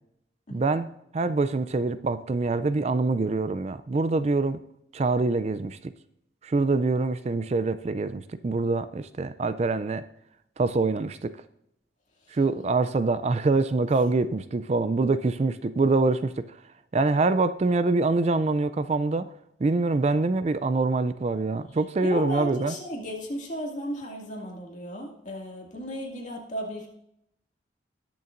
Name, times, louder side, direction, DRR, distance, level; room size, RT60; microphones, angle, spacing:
voice 1, 0.5-4.6 4.9-5.9 6.4-10.0 10.6-11.3 12.3-16.6 16.9-19.3 19.6-22.7, right 3 dB, 35° right, 13 dB, 0.4 m, -25 dB
voice 2, 22.0-26.9, equal, 40° left, -1 dB, 2.2 m, -34 dB
20.0 x 6.9 x 2.6 m, 0.79 s
head